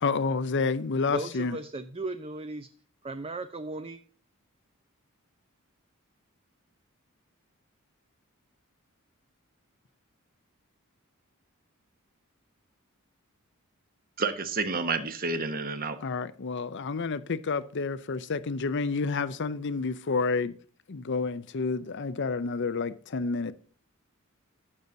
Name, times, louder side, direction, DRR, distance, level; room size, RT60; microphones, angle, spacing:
voice 1, 0.0-1.6 16.0-20.6 20.9-23.5, left 4 dB, 55° left, 0.6 m, -29 dB
voice 2, 1.1-2.7 3.0-4.0, right 2 dB, 25° right, 0.6 m, -36 dB
voice 3, 14.2-16.0, right 4 dB, 40° right, 1.2 m, -29 dB
15.5 x 6.6 x 2.7 m
head